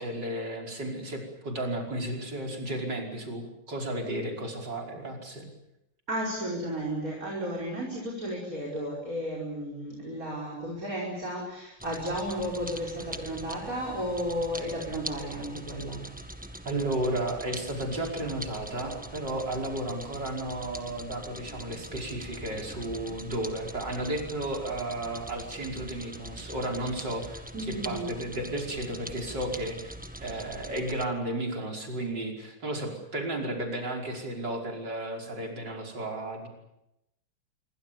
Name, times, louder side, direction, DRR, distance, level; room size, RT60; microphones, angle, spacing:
voice 1, 0.0-5.5 16.7-29.9 30.2-36.5, right 1 dB, 60° right, 1 dB, 6.0 m, -33 dB
voice 2, 6.1-16.1 27.5-28.1, equal, 40° right, -3 dB, 5.8 m, -33 dB
sound 1, 11.8-31.1, right 1 dB, 5° right, 1.4 m, -43 dB
27.0 x 24.5 x 7.1 m, 0.86 s
omnidirectional pair, 2.2 m